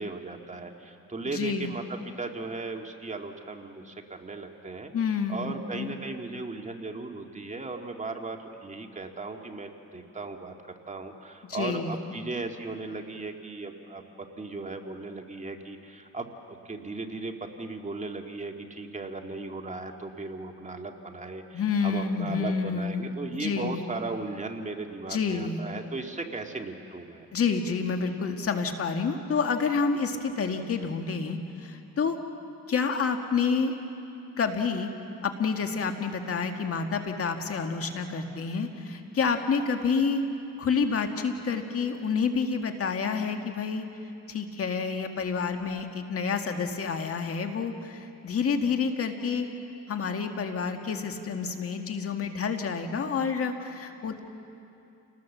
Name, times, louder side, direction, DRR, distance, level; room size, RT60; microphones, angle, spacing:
voice 1, 0.0-4.9 5.3-27.3, right 3 dB, 25° right, 3 dB, 2.0 m, -37 dB
voice 2, 1.2-1.7 4.9-6.0 11.5-11.9 21.5-23.9 25.1-25.6 27.3-32.2 32.7-33.8 34.4-34.9 35.2-40.2 40.6-43.8 44.3-49.5 49.9-54.2, left 5 dB, 50° left, 5 dB, 2.0 m, -29 dB
29.5 x 19.0 x 7.4 m, 2.7 s
cardioid pair, 90°, 30 cm